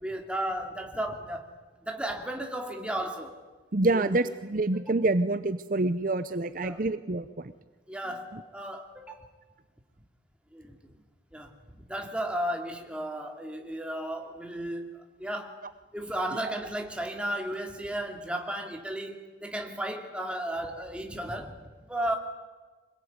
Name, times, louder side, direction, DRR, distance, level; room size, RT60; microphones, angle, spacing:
voice 1, 0.0-1.5 1.8-3.4 3.9-4.2 4.7-4.9 6.6-6.8 7.9-9.3 10.5-10.8 11.3-15.6 15.9-22.2, right 1 dB, 5° right, 3 dB, 2.6 m, -34 dB
voice 2, 3.7-7.5 8.3-8.4, right 2 dB, 45° right, 12 dB, 0.7 m, -27 dB
25.0 x 21.5 x 9.6 m, 1.3 s
head